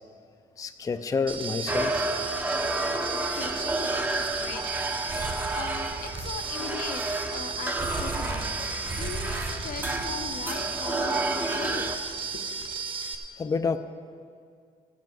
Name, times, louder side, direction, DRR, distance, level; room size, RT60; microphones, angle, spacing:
voice 1, 0.6-2.1 2.8-3.1 13.4-13.8, left 5 dB, 25° left, 8 dB, 0.4 m, -29 dB
sound 1, 1.3-13.1, right 5 dB, 35° right, 1.0 m, -34 dB
sound 2, 1.7-12.0, right 2 dB, 15° right, 0.6 m, -31 dB
voice 2, 3.1-4.7 5.5-7.0 7.3-11.8 12.3-12.7, left 6 dB, 85° left, 5 dB, 1.0 m, -40 dB
16.0 x 5.5 x 7.6 m, 2.1 s
wide cardioid pair, 155°, 14 cm